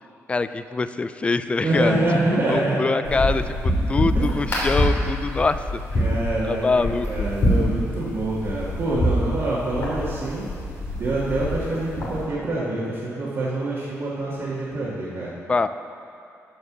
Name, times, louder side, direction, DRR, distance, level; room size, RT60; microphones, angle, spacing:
voice 1, 0.3-2.0 2.5-5.8 6.4-7.3 15.5-15.7, left 3 dB, 20° left, 12 dB, 0.3 m, -24 dB
voice 2, 1.6-3.5 4.1-4.7 5.9-10.4 10.9-15.3, right 2 dB, 45° right, -9 dB, 1.9 m, -26 dB
sound 1, 3.0-12.2, equal, 50° left, 2.8 m, -25 dB
14.0 x 5.1 x 6.1 m, 2.6 s
wide cardioid pair, 155°, 6 cm